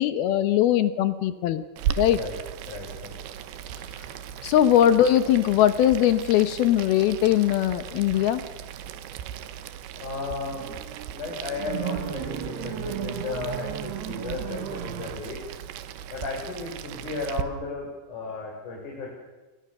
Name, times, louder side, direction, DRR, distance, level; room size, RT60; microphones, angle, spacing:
voice 1, 0.0-1.6 2.0-2.2 4.4-8.4, left 11 dB, 70° left, 12 dB, 2.6 m, -20 dB
Boiling, 1.8-17.4, right 10 dB, 85° right, 3.5 m, -37 dB
voice 2, 2.7-3.2 10.0-10.7 11.1-15.4 16.1-19.1, left 3 dB, 45° left, -2 dB, 6.1 m, -34 dB
sound 1, 8.1-8.4 10.2-15.4, right 10 dB, 70° right, 3.5 m, -35 dB
29.0 x 22.5 x 6.8 m, 1.2 s
omnidirectional pair, 5.0 m